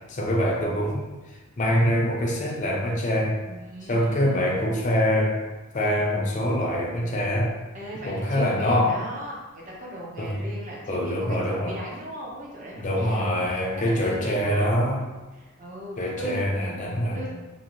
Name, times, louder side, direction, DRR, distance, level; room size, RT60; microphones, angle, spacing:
voice 1, 0.1-1.0 1.6-3.4 3.9-5.4 5.7-7.5 8.1-8.9 10.2-10.4 10.9-11.7 12.8-15.0 16.0-17.2, equal, 35° left, -1 dB, 0.5 m, -24 dB
voice 2, 3.5-4.7 7.7-14.9 15.3-16.5 16.8-17.3, right 1 dB, 35° right, -4 dB, 0.6 m, -38 dB
2.7 x 2.7 x 2.9 m, 1.1 s
head